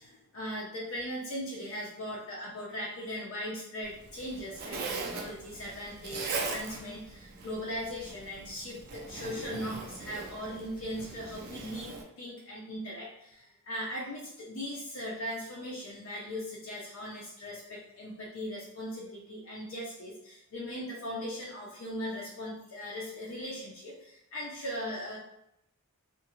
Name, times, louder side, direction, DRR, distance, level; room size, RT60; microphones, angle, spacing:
voice 1, 0.0-25.2, equal, 65° left, -4 dB, 0.5 m, -39 dB
Zipper (clothing), 3.8-12.0, right 4 dB, 45° right, 0.4 m, -40 dB
2.5 x 2.4 x 2.9 m, 0.81 s
head